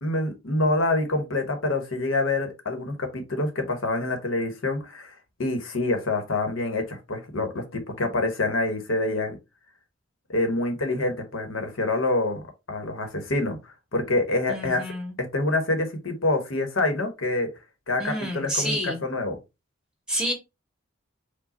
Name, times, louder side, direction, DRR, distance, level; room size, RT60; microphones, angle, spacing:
voice 1, 0.0-5.1 5.4-9.4 10.3-12.4 12.7-14.8 15.3-17.5 17.9-19.3, left 2 dB, 85° left, 1.1 m, -26 dB
voice 2, 14.5-15.2 18.0-19.0 20.1-20.3, equal, 5° right, 1.8 m, -29 dB
4.9 x 2.3 x 4.0 m
head